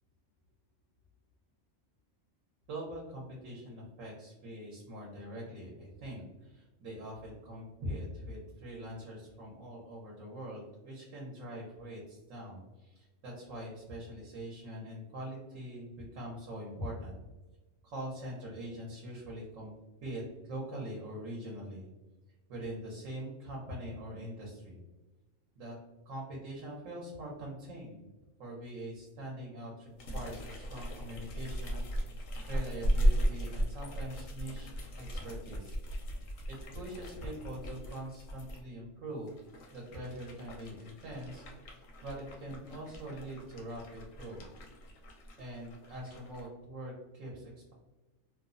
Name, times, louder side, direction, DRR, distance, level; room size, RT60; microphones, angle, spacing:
voice 1, 2.7-17.2 17.8-19.7 20.0-21.9 22.5-24.8 25.6-25.8 26.0-28.0 28.4-31.8 32.5-35.7 36.5-39.3 39.7-44.4 45.4-47.7, right 1 dB, 80° right, -3 dB, 1.1 m, -43 dB
sound 1, 30.0-38.6 39.2-46.5, equal, 85° left, 1.0 m, -36 dB
2.9 x 2.0 x 2.5 m, 1.1 s
omnidirectional pair, 1.3 m